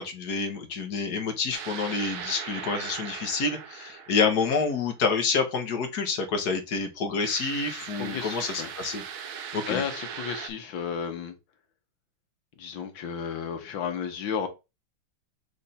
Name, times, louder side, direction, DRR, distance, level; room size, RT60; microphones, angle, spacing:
voice 1, 0.0-9.0 9.5-9.8, left 4 dB, 55° left, 1.6 m, -28 dB
sound 1, 1.5-4.9 7.2-10.5, right 8 dB, 80° right, 1.7 m, -39 dB
voice 2, 7.9-8.7 9.3-11.3 12.6-14.5, left 7 dB, 70° left, 1.9 m, -33 dB
6.5 x 3.5 x 4.2 m
omnidirectional pair, 2.2 m